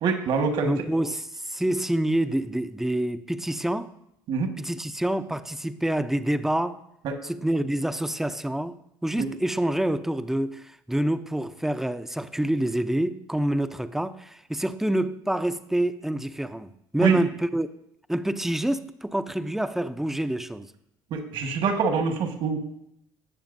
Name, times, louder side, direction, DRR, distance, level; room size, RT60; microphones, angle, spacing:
voice 1, 0.0-0.7 4.3-4.5 7.0-7.1 9.2-9.3 17.0-17.2 21.1-22.6, right 5 dB, 65° right, 1.6 m, -24 dB
voice 2, 0.6-3.9 4.6-6.8 7.2-8.8 9.0-17.7 18.1-20.7, right 1 dB, 5° right, 0.5 m, -27 dB
17.5 x 6.9 x 2.6 m
supercardioid pair, 100°, 9 cm